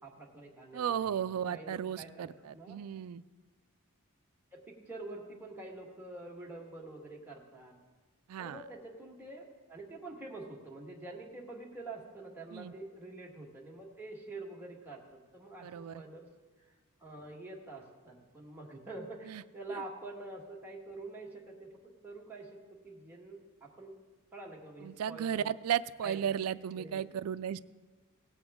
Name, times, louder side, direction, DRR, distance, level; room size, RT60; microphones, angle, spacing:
voice 1, 0.0-2.8 4.5-7.7 8.4-16.3 17.0-22.5 22.8-24.0 24.3-25.4 26.0-26.3 26.7-27.2, right 2 dB, 10° right, -3 dB, 1.7 m, -47 dB
voice 2, 0.7-3.2 8.3-8.6 12.5-12.7 15.6-16.0 19.3-19.4 19.7-19.8 24.8-27.6, right 9 dB, 70° right, 14 dB, 0.3 m, -35 dB
17.5 x 8.0 x 3.6 m, 1.3 s
head